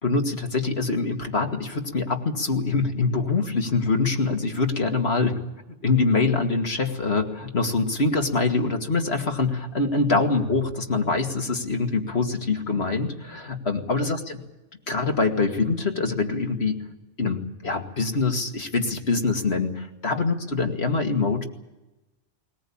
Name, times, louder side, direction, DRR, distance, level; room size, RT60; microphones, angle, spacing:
voice 1, 0.0-5.3 5.8-14.4 14.9-16.8 17.2-21.4, left 3 dB, 60° left, 4 dB, 2.6 m, -24 dB
21.0 x 20.0 x 8.7 m, 1.0 s
omnidirectional pair, 1.2 m